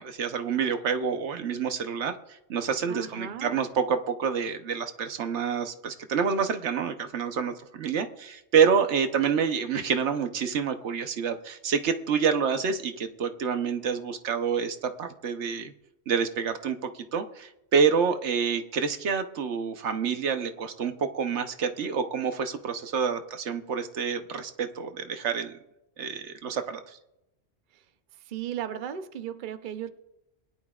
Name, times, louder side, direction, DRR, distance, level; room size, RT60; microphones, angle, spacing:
voice 1, 0.0-15.7 16.1-25.5 26.0-27.0, right 6 dB, 85° right, 8 dB, 1.2 m, -28 dB
voice 2, 2.9-3.6 27.7-27.8 28.2-29.9, right 9 dB, 50° right, 10 dB, 0.7 m, -36 dB
21.0 x 11.0 x 2.4 m, 0.88 s
omnidirectional pair, 1.1 m